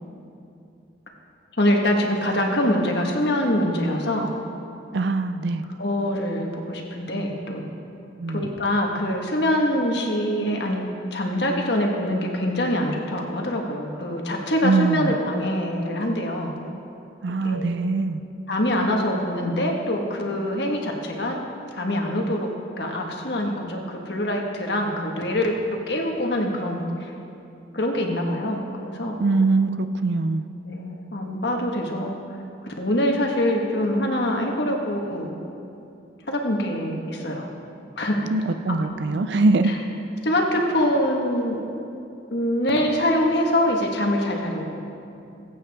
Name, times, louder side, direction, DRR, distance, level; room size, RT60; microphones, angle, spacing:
voice 1, 1.6-4.3 5.8-7.7 8.3-10.8 11.1-16.5 17.4-17.7 18.5-21.4 21.7-22.5 22.8-25.6 25.9-27.1 27.7-29.2 30.7-32.1 32.8-35.4 36.3-37.5 38.0-38.3 38.7-38.9 39.7-39.8 40.2-41.6 42.3-44.8, left 1 dB, 65° left, 1 dB, 1.4 m, -24 dB
voice 2, 4.9-5.6 8.2-8.5 14.6-15.2 17.2-18.2 29.2-30.5 38.3-39.8, right 3 dB, 70° right, 10 dB, 0.4 m, -22 dB
21.0 x 8.5 x 3.5 m, 2.7 s
head